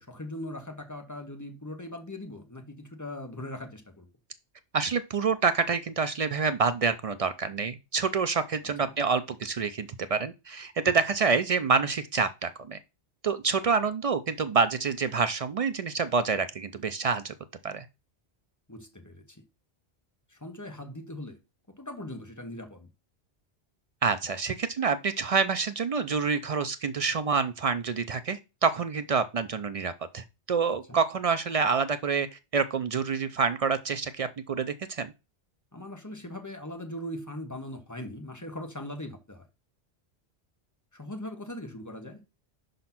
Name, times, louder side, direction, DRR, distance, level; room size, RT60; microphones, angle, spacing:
voice 1, 0.0-4.1 8.8-8.9 18.7-19.4 20.3-21.4 21.8-22.9 30.9-31.0 35.7-39.4 40.9-42.2, left 1 dB, 20° left, 0.9 m, -40 dB
voice 2, 4.7-12.8 13.2-17.3 17.6-17.9 24.0-35.1, right 5 dB, 55° right, 0.4 m, -27 dB
5.2 x 3.9 x 5.8 m
omnidirectional pair, 1.1 m